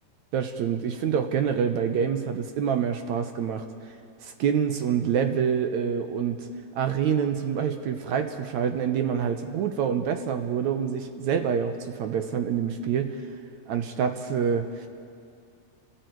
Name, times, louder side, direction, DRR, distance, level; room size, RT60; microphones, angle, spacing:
voice 1, 0.3-3.6 4.2-6.5 6.8-13.2 13.7-14.9, right 7 dB, 70° right, 7 dB, 1.9 m, -26 dB
29.5 x 25.5 x 4.6 m, 2.3 s
omnidirectional pair, 4.2 m